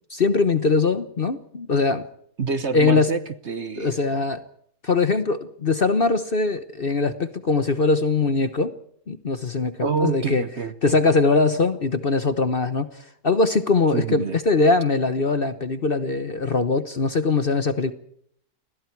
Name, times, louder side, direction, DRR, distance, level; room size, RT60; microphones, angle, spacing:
voice 1, 0.1-2.1 2.7-3.1 3.8-4.4 4.8-8.7 9.1-10.4 10.8-17.9, left 3 dB, 40° left, 1.1 m, -21 dB
voice 2, 2.4-3.2 3.5-3.9 9.8-11.0 13.9-14.4, right 5 dB, 45° right, 1.2 m, -26 dB
29.0 x 21.0 x 4.7 m
omnidirectional pair, 1.7 m